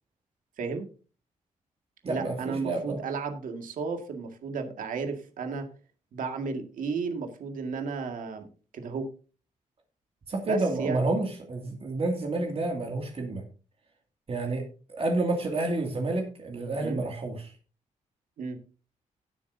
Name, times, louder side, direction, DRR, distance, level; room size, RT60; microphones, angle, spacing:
voice 1, 0.6-0.9 2.1-5.7 6.1-8.5 8.7-9.1 10.4-11.0 16.8-17.0 18.4-18.6, right 5 dB, 80° right, 5 dB, 2.0 m, -33 dB
voice 2, 2.0-3.0 10.3-13.4 14.3-14.6 14.9-17.5, right 2 dB, 45° right, 2 dB, 2.4 m, -29 dB
17.0 x 8.3 x 2.7 m, 0.36 s
cardioid pair, 110°, 14 cm